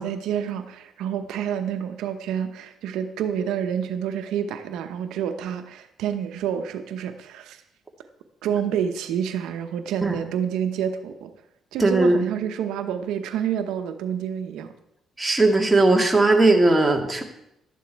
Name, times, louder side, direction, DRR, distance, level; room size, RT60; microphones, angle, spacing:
voice 1, 0.0-7.6 8.4-11.3 11.7-14.7, right 8 dB, 90° right, 8 dB, 0.9 m, -28 dB
voice 2, 11.8-12.2 15.2-17.2, right 2 dB, 15° right, 2 dB, 2.1 m, -18 dB
12.5 x 9.3 x 4.6 m, 0.81 s
cardioid pair, 90°, 0 cm